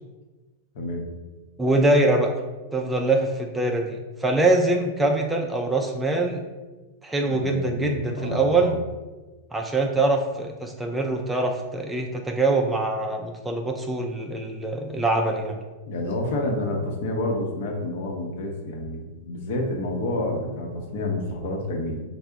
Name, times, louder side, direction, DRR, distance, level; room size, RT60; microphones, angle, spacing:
voice 1, 0.7-1.1 7.3-8.8 15.8-22.0, left 1 dB, 65° left, 1 dB, 0.7 m, -29 dB
voice 2, 1.6-2.3 2.7-6.4 7.0-8.8 9.5-15.6, right 2 dB, 10° right, 1 dB, 0.3 m, -23 dB
3.5 x 2.0 x 3.4 m, 1.2 s
hypercardioid pair, 115°, 0 cm